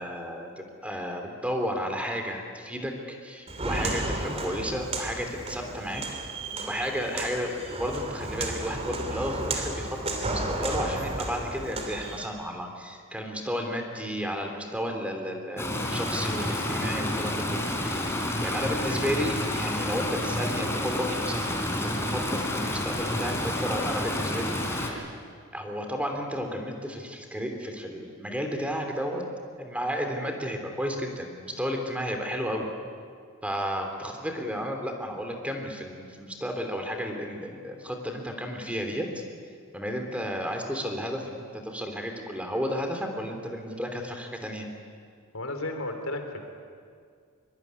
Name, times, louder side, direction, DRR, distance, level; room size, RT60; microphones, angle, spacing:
voice 1, 0.0-6.0 6.7-25.0 25.5-29.2 29.6-32.7 33.4-39.2 39.7-44.7, equal, 5° right, 3 dB, 3.3 m, -33 dB
Walk footsteps, 3.5-12.3, right 2 dB, 30° right, 2.9 m, -33 dB
Stream, 15.6-24.9, left 1 dB, 15° left, 3.7 m, -29 dB
voice 2, 45.3-46.5, left 2 dB, 80° left, 5 dB, 3.6 m, -33 dB
24.5 x 23.0 x 9.7 m, 2.1 s
head